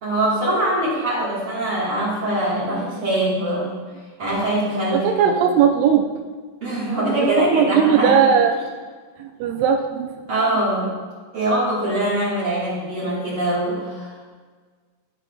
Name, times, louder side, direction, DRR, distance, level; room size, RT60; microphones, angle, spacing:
voice 1, 0.0-3.8 4.2-5.4 6.6-8.2 10.3-10.9 11.3-14.3, right 1 dB, 55° right, -8 dB, 1.6 m, -23 dB
voice 2, 4.9-6.1 7.4-8.6 9.2-10.2, right 7 dB, 85° right, 4 dB, 2.5 m, -18 dB
12.5 x 4.5 x 2.3 m, 1.5 s
omnidirectional pair, 4.7 m